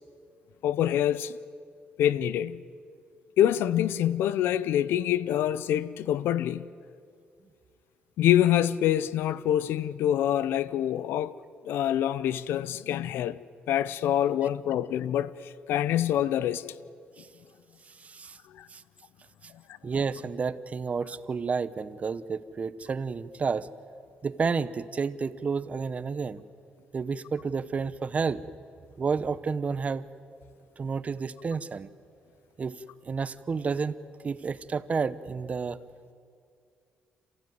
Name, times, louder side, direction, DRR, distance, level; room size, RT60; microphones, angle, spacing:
voice 1, 0.6-1.4 2.0-2.6 3.4-6.7 8.2-11.3 11.7-13.4 13.7-16.6 18.5-18.7, left 11 dB, 90° left, 0.6 m, -26 dB
voice 2, 18.0-18.4 18.7-18.8 19.4-19.5 19.8-23.7 24.2-26.4 26.9-28.4 29.0-30.1 30.8-31.9 32.6-34.0 34.2-35.8, right 5 dB, 40° right, 0.9 m, -30 dB
27.5 x 15.0 x 9.4 m
cardioid pair, 100°, 4 cm